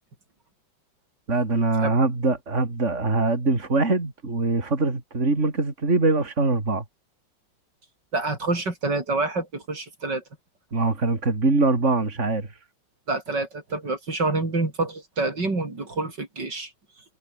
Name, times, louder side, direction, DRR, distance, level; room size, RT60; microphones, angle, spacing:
voice 1, 1.3-6.8 10.7-12.5, right 3 dB, 35° right, 4.1 m, -23 dB
voice 2, 8.1-10.2 13.1-16.7, right 3 dB, 60° right, 5.6 m, -27 dB
omnidirectional pair, 2.1 m